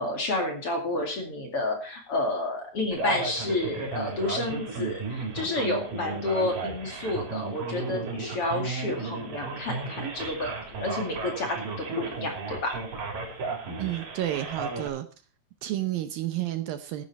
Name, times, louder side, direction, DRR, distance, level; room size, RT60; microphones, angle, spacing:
voice 1, 0.0-10.5 10.8-12.8, left 2 dB, 40° left, 2 dB, 2.8 m, -30 dB
Male speech man speaking, 2.9-14.9, right 4 dB, 55° right, 5.0 m, -34 dB
voice 2, 13.8-15.1 15.6-17.1, right 13 dB, 75° right, 9 dB, 2.4 m, -31 dB
14.5 x 10.5 x 4.2 m, 0.35 s
omnidirectional pair, 4.6 m